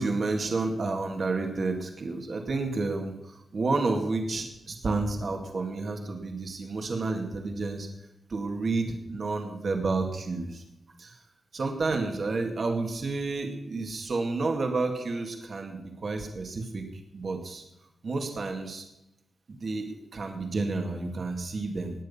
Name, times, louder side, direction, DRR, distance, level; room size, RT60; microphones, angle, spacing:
voice 1, 0.0-7.9 8.3-10.6 11.0-11.2 11.5-16.8 17.1-17.6 18.0-18.8 19.5-21.9, right 3 dB, 50° right, 3 dB, 2.1 m, -30 dB
19.0 x 9.3 x 5.6 m, 0.89 s
wide cardioid pair, 155°, 0 cm